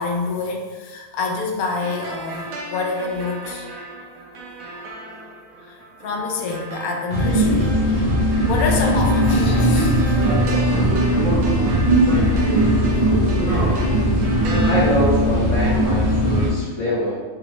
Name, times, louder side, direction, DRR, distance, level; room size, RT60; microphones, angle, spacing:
voice 1, 0.0-3.7 4.7-4.8 5.6-8.1 8.5-10.5, left 4 dB, 85° left, 2 dB, 1.0 m, -27 dB
sound 1, 1.8-14.9, right 1 dB, 85° right, 1.1 m, -35 dB
sound 2, 7.1-16.5, equal, 35° right, 0.8 m, -18 dB
voice 2, 14.6-17.1, left 1 dB, 65° left, -6 dB, 1.1 m, -24 dB
3.1 x 3.1 x 2.9 m, 1.3 s
omnidirectional pair, 1.5 m